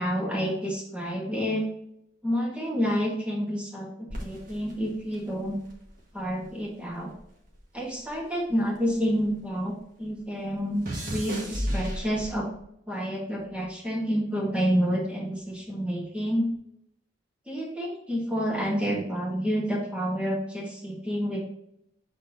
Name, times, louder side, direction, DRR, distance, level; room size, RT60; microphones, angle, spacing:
voice 1, 0.0-1.7 2.2-5.6 6.1-7.1 7.7-10.9 11.1-12.5 12.9-16.5 17.5-21.4, equal, 5° right, -2 dB, 1.6 m, -29 dB
sound 1, 4.1-6.6 6.9-9.5 9.8-12.6 13.3-13.7, equal, 45° right, 1.7 m, -35 dB
7.7 x 4.3 x 2.9 m, 0.74 s
head